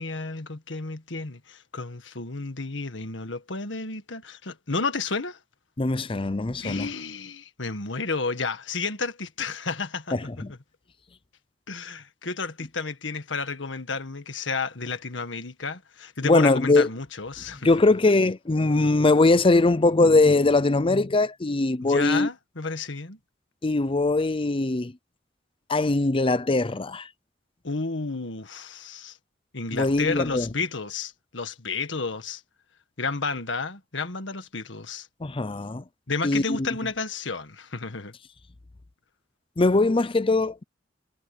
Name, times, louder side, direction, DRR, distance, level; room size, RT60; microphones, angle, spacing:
voice 1, 0.0-5.4 6.6-10.2 10.5-10.6 11.7-17.7 21.8-23.2 27.6-29.2 29.5-32.4 33.0-35.1 36.1-38.1, left 4 dB, 80° left, 1.8 m, -31 dB
voice 2, 5.8-6.9 10.1-10.5 16.2-16.9 17.6-22.3 23.6-24.9 25.7-27.1 29.7-30.5 35.2-35.8 36.2-36.7 39.6-40.6, left 2 dB, 30° left, 0.6 m, -21 dB
head